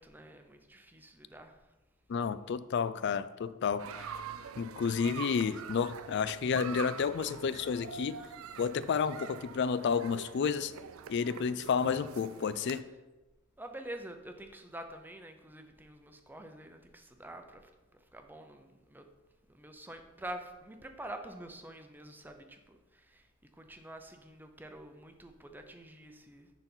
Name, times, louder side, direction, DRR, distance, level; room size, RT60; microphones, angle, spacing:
voice 1, 0.0-1.6 13.6-19.1 19.5-23.3 23.6-26.5, right 1 dB, 10° right, 6 dB, 0.6 m, -47 dB
voice 2, 2.1-4.1 4.6-8.2 8.6-10.7 11.1-12.8, left 6 dB, 55° left, 15 dB, 0.4 m, -31 dB
sound 1, 3.8-12.8, right 7 dB, 85° right, 0.4 m, -45 dB
10.5 x 4.0 x 4.4 m, 1.1 s
head